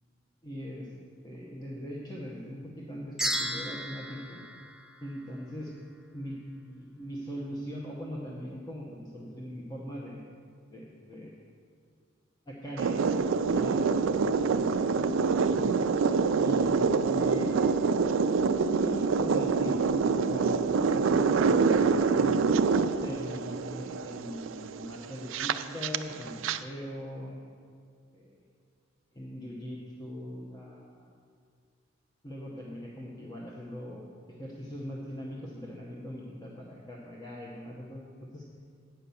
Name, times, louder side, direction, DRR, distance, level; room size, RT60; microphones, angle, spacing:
voice 1, 0.4-0.9 1.2-4.4 5.0-5.7 6.1-10.2 10.7-11.5 12.5-13.1 13.5-15.7 16.4-16.8 17.1-17.5 18.6-22.6 23.0-27.4 28.1-28.4 29.1-31.1 32.2-34.1 34.4-38.4, equal, 20° left, -3 dB, 0.9 m, -40 dB
sound 1, 3.2-5.7, right 1 dB, ahead, 0.5 m, -35 dB
sound 2, 12.8-26.6, right 5 dB, 70° right, 0.4 m, -26 dB
9.2 x 5.8 x 6.9 m, 2.1 s
head